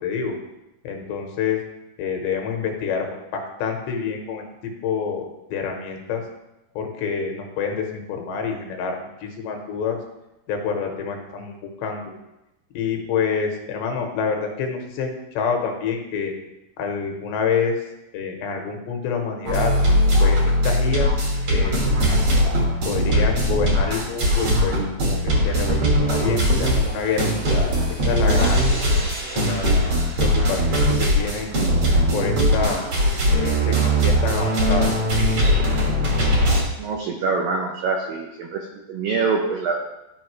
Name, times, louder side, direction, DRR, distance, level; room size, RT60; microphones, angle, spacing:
voice 1, 0.0-0.4 0.8-1.6 2.0-6.2 6.8-10.0 10.5-12.1 12.7-16.3 16.8-17.8 18.1-19.7 20.2-21.1 21.5-21.8 22.9-27.8 28.1-28.6 29.4-31.6 32.1-32.8 33.3-34.9, left 6 dB, 80° left, 3 dB, 3.1 m, -27 dB
sound 1, 19.5-36.6, equal, 60° right, 1.4 m, -20 dB
voice 2, 36.8-39.7, right 4 dB, 90° right, 1 dB, 2.0 m, -25 dB
13.0 x 5.0 x 3.2 m, 0.94 s
omnidirectional pair, 5.1 m